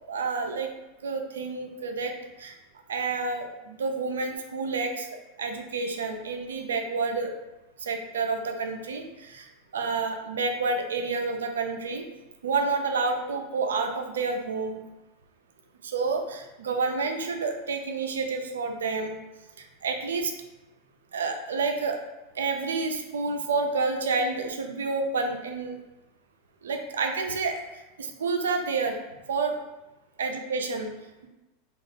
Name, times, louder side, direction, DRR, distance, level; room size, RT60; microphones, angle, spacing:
voice 1, 0.1-0.7 1.0-2.1 2.4-2.5 2.9-5.1 5.4-7.3 7.8-12.1 12.4-14.8 15.8-19.2 19.6-20.3 21.1-22.0 22.4-25.8 26.6-27.6 28.0-29.0 29.3-29.6 30.2-30.9, right 4 dB, 85° right, 4 dB, 0.4 m, -29 dB
2.7 x 2.3 x 3.4 m, 1.0 s
hypercardioid pair, 100°, 0 cm